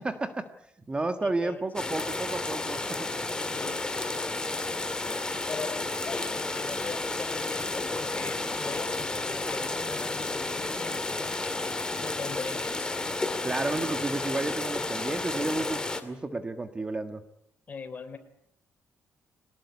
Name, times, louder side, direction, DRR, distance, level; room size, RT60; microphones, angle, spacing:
voice 1, 0.0-0.5 0.9-3.1 13.4-17.2, right 2 dB, 20° right, 8 dB, 1.6 m, -31 dB
voice 2, 1.2-1.7 3.5-4.5 5.5-11.3 12.0-12.9 17.7-18.2, left 5 dB, 35° left, 10 dB, 3.5 m, -41 dB
sound 1, 1.7-16.0, left 2 dB, 15° left, 2.4 m, -32 dB
22.5 x 19.5 x 9.6 m, 0.75 s
cardioid pair, 120°, 5 cm